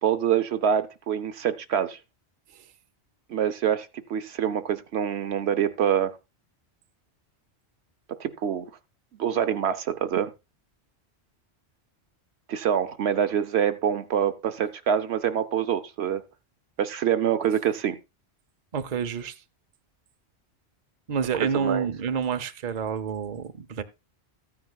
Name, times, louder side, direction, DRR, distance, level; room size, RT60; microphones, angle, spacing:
voice 1, 0.0-2.0 3.3-6.1 8.2-8.6 9.2-10.3 12.5-16.2 16.8-18.0 21.4-21.9, right 9 dB, 70° right, 0.9 m, -25 dB
voice 2, 18.7-19.3 21.1-23.8, right 6 dB, 45° right, 0.7 m, -28 dB
14.0 x 9.6 x 2.3 m
omnidirectional pair, 1.1 m